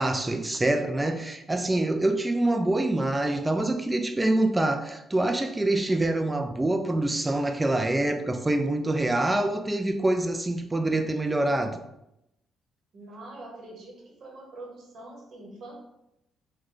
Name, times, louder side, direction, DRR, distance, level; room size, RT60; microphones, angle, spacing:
voice 1, 0.0-11.8, right 2 dB, 15° right, 0.4 m, -25 dB
voice 2, 12.9-15.8, right 2 dB, 60° right, 0.9 m, -44 dB
3.8 x 2.2 x 3.1 m
cardioid pair, 90°, 0 cm